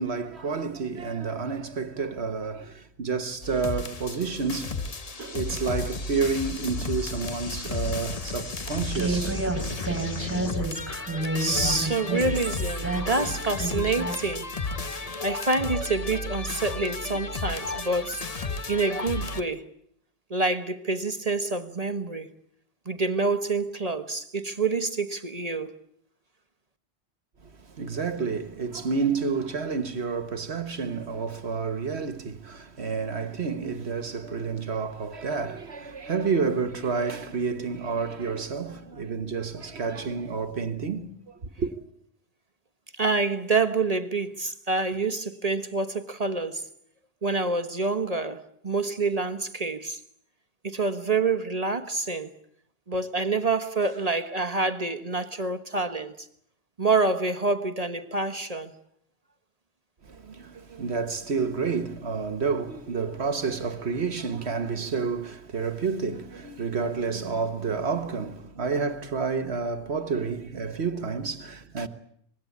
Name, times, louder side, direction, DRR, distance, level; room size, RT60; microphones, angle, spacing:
voice 1, 0.0-4.8 5.2-9.4 27.4-41.7 60.0-71.9, right 5 dB, 70° right, 1.6 m, -30 dB
sound 1, 3.4-19.4, left 3 dB, 35° left, 1.1 m, -33 dB
Human voice, 8.9-14.2, right 2 dB, 10° right, 3.7 m, -30 dB
voice 2, 11.4-14.5 14.9-18.3 18.7-19.7 20.3-22.3 22.9-25.8 43.0-46.7 47.2-50.0 50.6-52.3 52.9-56.1 56.8-58.7, right 3 dB, 35° right, 1.3 m, -27 dB
25.0 x 21.0 x 8.6 m
omnidirectional pair, 1.1 m